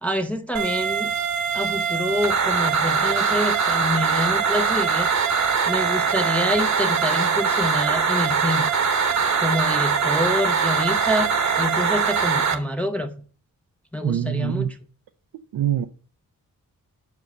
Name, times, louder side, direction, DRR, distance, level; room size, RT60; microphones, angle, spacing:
voice 1, 0.0-1.1 1.5-5.1 5.7-8.7 9.4-13.2 13.9-14.8, left 1 dB, 5° left, 0.5 m, -27 dB
sound 1, 0.5-12.5, right 5 dB, 50° right, 1.0 m, -22 dB
voice 2, 14.0-14.7 15.5-15.8, right 11 dB, 80° right, 0.6 m, -24 dB
6.4 x 4.9 x 6.5 m
wide cardioid pair, 145°, 34 cm